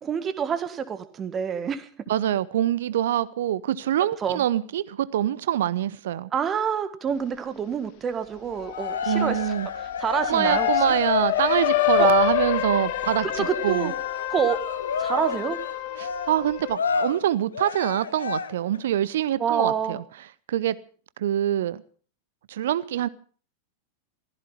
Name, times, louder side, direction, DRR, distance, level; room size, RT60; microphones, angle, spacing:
voice 1, 0.0-1.9 4.2-4.4 6.3-10.9 12.0-12.1 13.2-14.0 14.3-14.6 15.0-15.6 19.4-20.0, right 7 dB, 25° right, 11 dB, 1.7 m, -27 dB
voice 2, 2.1-6.3 9.1-9.7 10.3-13.9 16.0-20.0 20.5-20.8 21.2-21.8 22.5-23.1, right 11 dB, 60° right, 18 dB, 0.7 m, -25 dB
sound 1, 8.5-16.7, left 19 dB, 45° left, 1.0 m, -27 dB
Cheering, 8.7-18.8, left 5 dB, 70° left, 1.1 m, -31 dB
15.5 x 15.0 x 5.7 m, 0.42 s
figure-of-eight pair, 90°, 0 cm